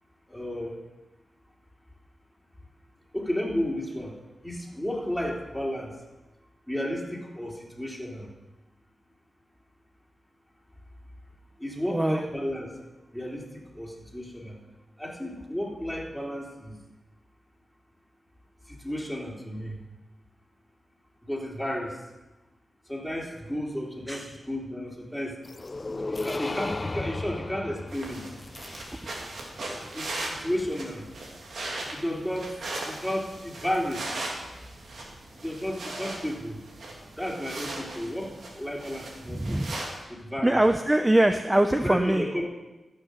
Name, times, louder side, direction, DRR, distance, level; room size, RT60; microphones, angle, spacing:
voice 1, 0.3-0.8 3.1-6.0 6.7-8.3 11.6-12.8 13.1-14.6 15.0-16.8 18.6-19.8 21.2-22.0 22.8-25.4 25.9-28.3 29.9-31.0 31.9-34.1 35.3-36.6 37.1-39.6 40.1-40.6 41.8-42.4, equal, ahead, -2 dB, 3.5 m, -33 dB
voice 2, 11.9-12.2 24.1-24.3 28.9-29.0 39.3-39.8 40.4-42.3, right 1 dB, 20° right, 7 dB, 0.7 m, -23 dB
sound 1, 25.4-29.5, left 2 dB, 40° left, 0.4 m, -35 dB
sound 2, 27.9-40.0, right 2 dB, 80° right, 2.3 m, -38 dB
14.0 x 6.6 x 6.5 m, 1.1 s
cardioid pair, 50°, 0 cm